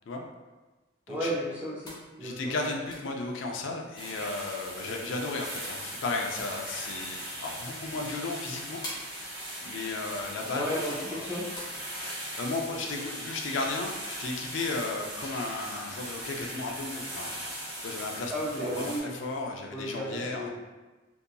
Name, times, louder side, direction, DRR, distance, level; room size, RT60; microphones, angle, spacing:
voice 1, 1.1-1.9 2.2-2.5 10.5-11.5 18.3-19.2 19.7-20.5, equal, 10° right, -6 dB, 0.3 m, -33 dB
sound 1, 1.8-19.4, left 1 dB, 20° left, 0.7 m, -52 dB
voice 2, 2.2-8.8 9.6-10.6 11.1-11.3 12.4-17.3 17.8-20.5, left 3 dB, 70° left, 2 dB, 0.4 m, -34 dB
sound 2, 3.9-19.0, right 1 dB, 25° right, 1.0 m, -39 dB
2.7 x 2.5 x 2.2 m, 1.2 s
head